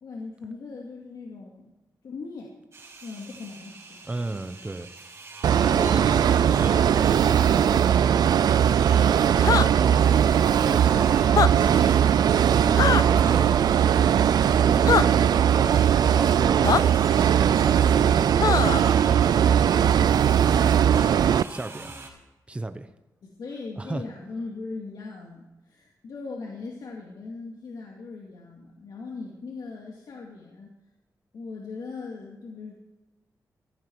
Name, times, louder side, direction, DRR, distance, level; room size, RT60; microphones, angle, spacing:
voice 1, 0.0-1.7 2.0-2.5 3.0-4.0 15.3-15.8 16.3-16.6 23.2-30.7 31.3-32.7, left 4 dB, 80° left, -1 dB, 2.3 m, -39 dB
sound 1, 2.7-22.1, right 3 dB, 40° right, 5.5 m, -41 dB
voice 2, 4.1-4.9 5.7-8.5 8.9-13.6 14.6-15.7 16.0-16.9 21.0-21.9 22.5-22.9 23.8-24.0, right 2 dB, 15° right, 9 dB, 0.8 m, -36 dB
sound 2, 5.4-21.4, right 9 dB, 85° right, 0.4 m, -20 dB
sound 3, 9.4-9.7 11.2-11.5 12.8-13.0 14.9-15.0 16.6-16.8 18.4-18.8, left 7 dB, 60° left, 0.4 m, -21 dB
14.5 x 14.5 x 4.7 m, 1.0 s
wide cardioid pair, 120°, 7 cm